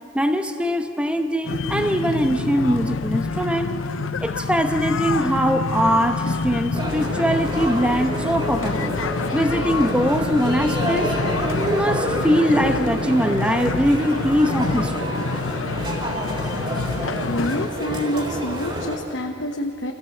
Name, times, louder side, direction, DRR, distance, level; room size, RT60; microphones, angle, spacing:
voice 1, 0.1-3.7 4.2-8.9 9.3-11.2 11.7-15.1, equal, 5° right, 6 dB, 1.0 m, -22 dB
sound 1, 1.4-17.7, left 4 dB, 85° left, 0.7 m, -27 dB
sound 2, 6.7-19.0, equal, 25° right, 3.7 m, -28 dB
voice 2, 17.2-19.9, equal, 65° left, 2 dB, 1.2 m, -27 dB
28.0 x 16.5 x 7.9 m, 2.4 s
head